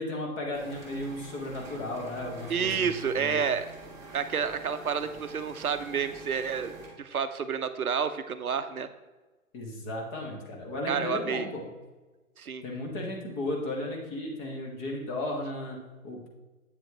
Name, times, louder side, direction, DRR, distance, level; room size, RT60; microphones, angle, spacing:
voice 1, 0.0-2.9 3.2-3.4 9.5-11.6 12.6-16.3, left 1 dB, 20° left, 0 dB, 1.2 m, -35 dB
sound 1, 0.5-6.9, right 3 dB, 5° right, 1.0 m, -47 dB
voice 2, 2.5-3.7 4.1-6.7 7.0-8.9 10.9-11.5 12.4-12.6, right 6 dB, 75° right, 11 dB, 0.7 m, -29 dB
8.3 x 7.4 x 2.9 m, 1.2 s
figure-of-eight pair, 125°, 44 cm